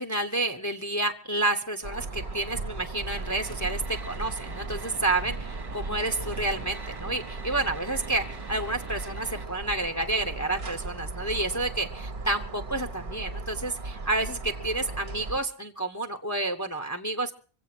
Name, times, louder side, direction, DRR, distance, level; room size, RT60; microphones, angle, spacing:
voice 1, 0.0-17.3, right 2 dB, 20° left, 5 dB, 0.9 m, -30 dB
sound 1, 1.8-15.4, right 3 dB, 55° right, 1.2 m, -37 dB
sound 2, 3.1-9.5, right 3 dB, 25° right, 0.7 m, -44 dB
24.5 x 8.3 x 6.0 m, 0.40 s
omnidirectional pair, 1.1 m